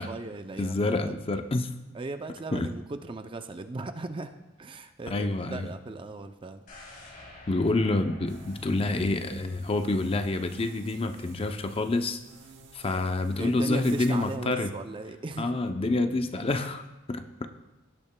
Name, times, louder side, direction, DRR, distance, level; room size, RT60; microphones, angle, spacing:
voice 1, 0.0-1.2 1.9-6.6 13.4-15.6, right 2 dB, 25° right, 9 dB, 0.4 m, -37 dB
voice 2, 0.6-1.7 2.5-2.7 5.1-5.7 7.5-12.2 12.7-14.7 15.4-17.5, left 2 dB, 30° left, 8 dB, 0.5 m, -28 dB
sound 1, 6.7-10.7 11.0-11.1, left 2 dB, 45° left, 3.1 m, -50 dB
sound 2, 8.3-14.4, right 5 dB, 65° right, 1.0 m, -52 dB
17.0 x 8.6 x 2.2 m, 1.0 s
head